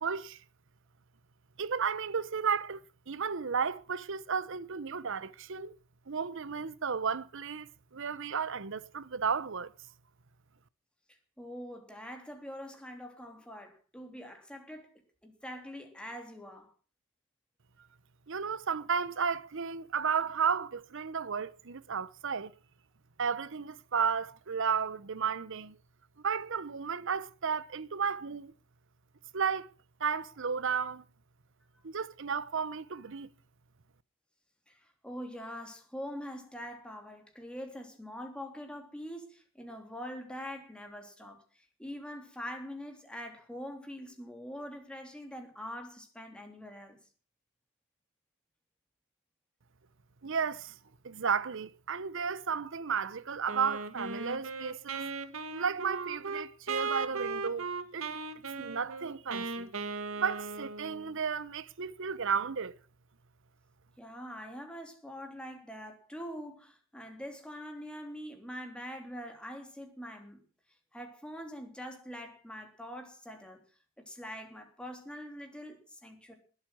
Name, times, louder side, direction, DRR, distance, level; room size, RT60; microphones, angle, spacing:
voice 1, 0.0-0.4 1.6-5.8 6.1-9.7 18.3-22.5 23.2-25.7 26.2-28.5 29.3-29.7 30.0-31.0 31.8-33.3 50.2-50.7 51.0-55.1 55.5-58.2 58.6-59.7 60.2-62.7, right 6 dB, 65° right, 0.8 m, -33 dB
voice 2, 11.1-16.7 31.7-31.8 34.7-47.0 64.0-70.4 70.9-73.6 74.0-76.3, equal, 5° left, 3.4 m, -44 dB
Wind instrument woodwind instrument, 53.5-61.1, right 4 dB, 80° right, 1.6 m, -37 dB
20.5 x 8.2 x 6.2 m
head